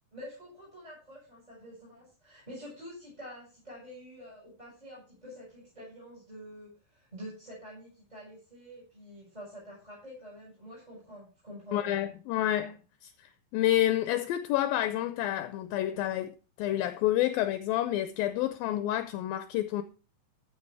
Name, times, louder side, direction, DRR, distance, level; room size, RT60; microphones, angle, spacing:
voice 1, 0.1-12.0, equal, 10° right, 6.4 m, -47 dB
voice 2, 11.7-12.8 13.0-13.1 13.5-19.8, left 13 dB, 80° left, 2.3 m, -29 dB
14.5 x 6.8 x 4.7 m
omnidirectional pair, 4.6 m